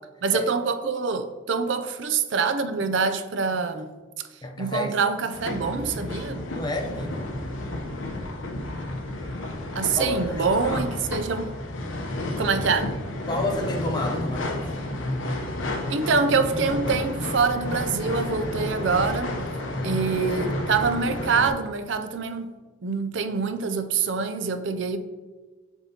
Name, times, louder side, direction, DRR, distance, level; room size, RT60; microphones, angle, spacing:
voice 1, 0.2-3.9 4.6-6.4 9.7-11.5 12.4-12.9 15.9-19.3 19.8-22.5 22.8-25.0, right 5 dB, 70° right, 9 dB, 0.5 m, -25 dB
voice 2, 4.4-4.9 6.5-7.3 10.0-10.8 13.3-14.6 19.7-20.1, left 1 dB, 20° left, 2 dB, 0.7 m, -30 dB
sound 1, 5.3-21.5, left 1 dB, 90° left, 0.8 m, -31 dB
7.1 x 5.3 x 2.9 m, 1.4 s
head